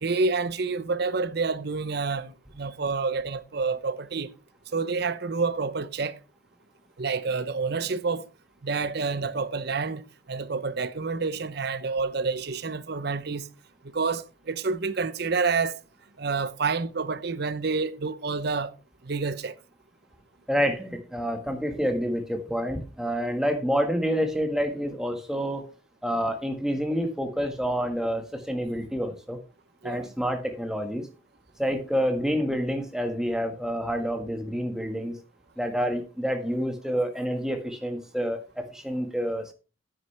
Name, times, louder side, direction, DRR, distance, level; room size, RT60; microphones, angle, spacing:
voice 1, 0.0-4.3 4.7-6.2 7.0-8.3 8.6-13.5 13.9-15.8 16.2-18.7 19.0-19.5 29.8-30.1, right 4 dB, 50° right, 0.7 m, -28 dB
voice 2, 20.5-25.6 26.0-29.4 29.8-31.0 31.6-35.1 35.6-39.5, equal, 5° right, 1.5 m, -28 dB
10.0 x 9.5 x 3.3 m
head